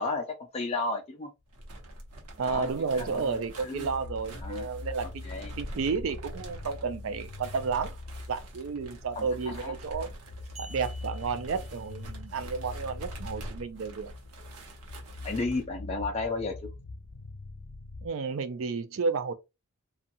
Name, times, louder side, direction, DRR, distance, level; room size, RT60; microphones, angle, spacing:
voice 1, 0.0-1.3 2.4-2.7 3.0-3.4 3.6-3.9 4.4-4.7 5.2-5.5 9.2-9.7 15.2-16.7, left 3 dB, 30° left, 0.4 m, -33 dB
sound 1, 1.5-15.6, right 1 dB, 85° right, 0.8 m, -46 dB
sound 2, 1.9-18.1, left 2 dB, 80° left, 0.5 m, -43 dB
voice 2, 2.4-8.0 8.3-10.1 10.6-14.1 18.0-19.3, right 5 dB, 60° right, 0.4 m, -32 dB
sound 3, 10.6-12.4, right 2 dB, 30° right, 0.7 m, -51 dB
2.7 x 2.4 x 2.6 m
head